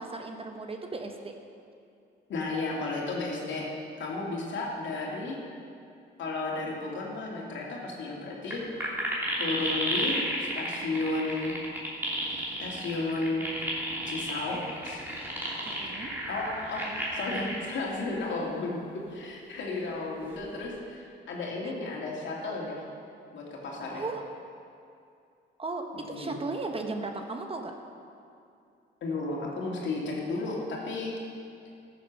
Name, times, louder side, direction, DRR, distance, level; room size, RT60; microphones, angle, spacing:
voice 1, 0.0-1.3 15.6-16.1 21.6-21.7 23.9-24.2 25.6-27.7, right 3 dB, 30° right, 4 dB, 1.2 m, -36 dB
voice 2, 2.3-3.7 4.0-5.4 6.2-8.6 9.4-11.5 12.6-13.7 14.1-15.0 16.3-16.8 17.1-18.8 19.1-22.8 23.3-24.0 25.9-26.3 29.0-31.1, left 3 dB, 70° left, -3 dB, 2.8 m, -33 dB
sound 1, 8.5-8.6 8.8-17.7 18.3-18.4 20.2-20.7, right 1 dB, 10° right, 3.2 m, -32 dB
13.5 x 7.6 x 6.2 m, 2.5 s
cardioid pair, 90°, 20 cm